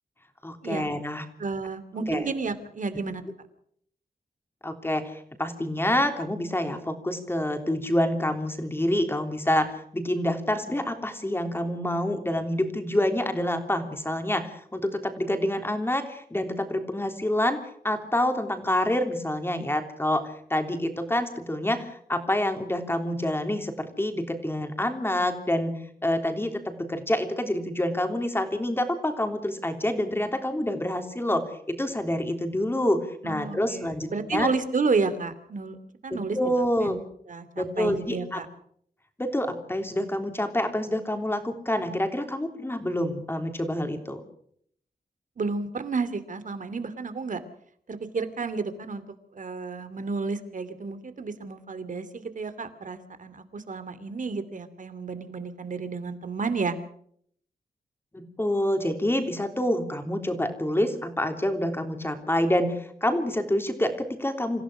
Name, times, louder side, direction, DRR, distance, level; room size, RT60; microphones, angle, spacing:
voice 1, 0.4-1.2 2.1-2.2 4.6-17.6 17.8-25.8 26.0-34.5 36.1-37.0 37.6-38.4 39.2-44.2 58.1-64.6, left 1 dB, 15° left, 6 dB, 3.4 m, -27 dB
voice 2, 1.4-3.2 33.2-35.8 36.0-36.4 36.8-37.0 37.3-38.5 45.4-47.4 47.9-49.0 49.3-56.8, right 4 dB, 55° right, 12 dB, 2.7 m, -31 dB
27.0 x 16.0 x 6.3 m, 0.63 s
wide cardioid pair, 110°, 15 cm